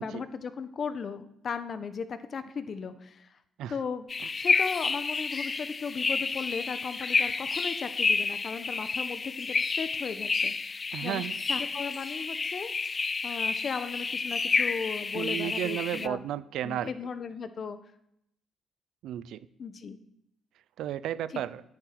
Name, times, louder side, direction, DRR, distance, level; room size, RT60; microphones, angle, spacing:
voice 1, 0.0-3.4 3.7-4.1 4.3-10.5 11.0-16.2 16.6-17.8 19.6-20.0 21.3-21.4, left 5 dB, 50° left, 10 dB, 1.3 m, -36 dB
sound 1, 4.1-16.1, left 4 dB, 35° left, 0.5 m, -30 dB
voice 2, 10.9-11.3 15.1-16.9 19.0-19.5 20.8-21.6, right 11 dB, 80° right, 16 dB, 0.6 m, -33 dB
11.0 x 9.1 x 9.5 m, 0.76 s
cardioid pair, 90°, 0 cm